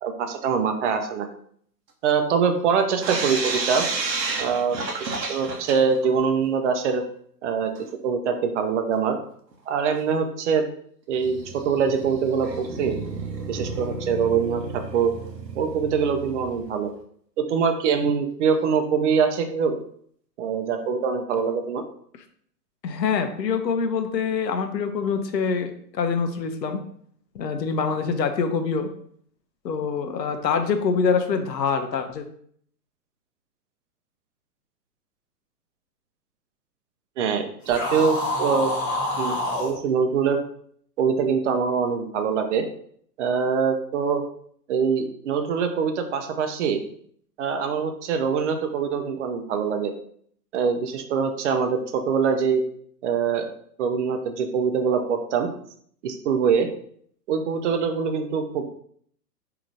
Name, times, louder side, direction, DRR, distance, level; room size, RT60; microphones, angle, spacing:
voice 1, 0.0-1.3 2.0-3.9 4.4-7.0 7.4-7.7 8.0-9.2 9.7-10.6 11.1-13.0 13.5-15.1 15.6-16.9 17.4-19.8 20.4-21.8 37.2-38.7 39.2-40.4 41.0-42.6 43.2-44.2 44.7-46.8 47.4-49.9 50.5-52.6 53.0-53.5 53.8-55.5 56.0-56.7 57.3-58.6, right 6 dB, 45° right, 6 dB, 0.6 m, -24 dB
sound 1, 3.0-6.1 6.4-6.5 6.7-6.8 7.8-7.9 8.9-9.0 9.5-9.6 10.0-10.1 11.2-16.8, right 3 dB, 85° right, 0.9 m, -31 dB
voice 2, 22.8-26.8 27.3-28.9 29.6-32.3, left 5 dB, 80° left, 7 dB, 0.7 m, -25 dB
sound 2, 37.6-39.7, left 1 dB, 15° left, 0.8 m, -27 dB
4.7 x 2.9 x 2.6 m, 0.63 s
hypercardioid pair, 120°, 49 cm